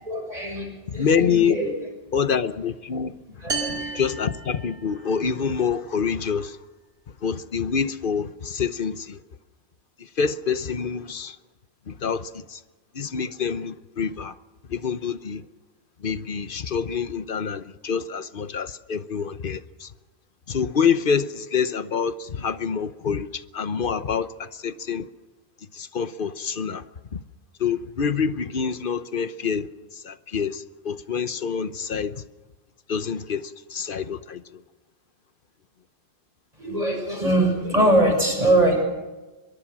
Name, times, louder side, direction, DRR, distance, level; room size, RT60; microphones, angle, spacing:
voice 1, 0.0-1.7 3.4-4.0 36.6-38.8, right 1 dB, 40° right, 6.7 m, -22 dB
voice 2, 0.9-1.6 2.1-3.2 3.5-3.6 3.9-6.6 7.2-9.2 10.2-11.4 11.9-12.6 12.9-14.3 14.7-15.4 16.0-19.9 20.5-25.1 25.7-26.8 27.1-27.2 27.6-29.7 30.0-32.2 32.9-34.4, left 6 dB, 60° left, 1.1 m, -26 dB
sound 1, 3.5-5.2, right 4 dB, 70° right, 3.4 m, -32 dB
24.0 x 22.5 x 6.2 m
omnidirectional pair, 1.0 m